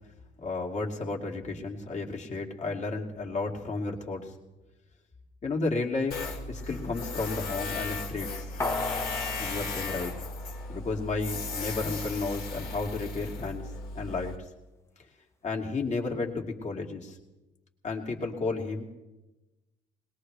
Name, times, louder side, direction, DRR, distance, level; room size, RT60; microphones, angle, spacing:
voice 1, 0.4-4.3 5.4-8.5 9.4-10.1 10.7-14.4 15.4-17.2 17.8-18.8, left 3 dB, 45° left, 1 dB, 2.4 m, -32 dB
Tools, 6.1-14.4, left 3 dB, 70° left, 2.7 m, -36 dB
sound 1, 8.6-11.2 11.5-11.6, left 2 dB, 15° left, 0.9 m, -35 dB
21.5 x 20.0 x 3.3 m, 1.1 s
cardioid pair, 110°, 17 cm